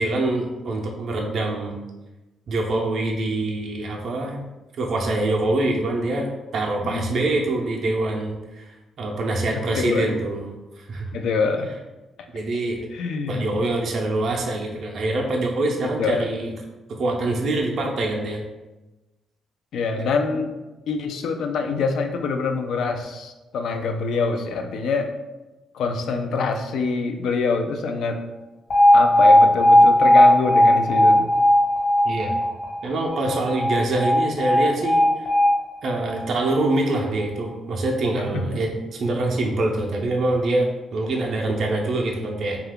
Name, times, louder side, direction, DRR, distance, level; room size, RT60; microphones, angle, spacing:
voice 1, 0.0-1.8 2.5-4.4 4.8-10.4 10.8-11.1 12.3-12.8 13.3-16.5 16.9-18.4 32.0-32.4 32.8-35.3 35.8-42.6, right 2 dB, 55° right, 0 dB, 0.5 m, -25 dB
voice 2, 6.8-7.2 9.7-10.2 11.1-11.7 12.9-13.4 16.0-16.3 19.7-20.5 20.9-25.1 25.7-28.2 28.9-31.3 38.2-38.4, left 4 dB, 75° left, 5 dB, 0.3 m, -25 dB
Alarm, 28.7-36.8, left 1 dB, 55° left, 1.2 m, -17 dB
2.7 x 2.3 x 3.5 m, 1.1 s
cardioid pair, 90°, 0 cm